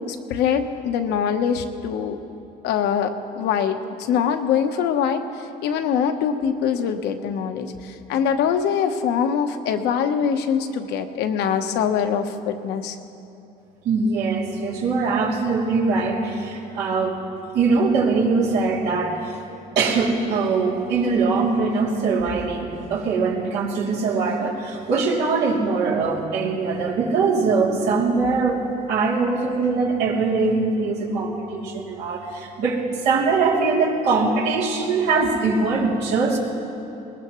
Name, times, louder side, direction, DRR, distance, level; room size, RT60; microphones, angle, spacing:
voice 1, 0.0-2.2 2.6-13.0, left 7 dB, 85° left, 6 dB, 1.1 m, -23 dB
voice 2, 13.8-17.2 17.5-19.4 19.7-28.6 28.9-36.4, right 4 dB, 85° right, -3 dB, 3.0 m, -22 dB
20.5 x 19.5 x 3.2 m, 3.0 s
cardioid pair, 110°, 17 cm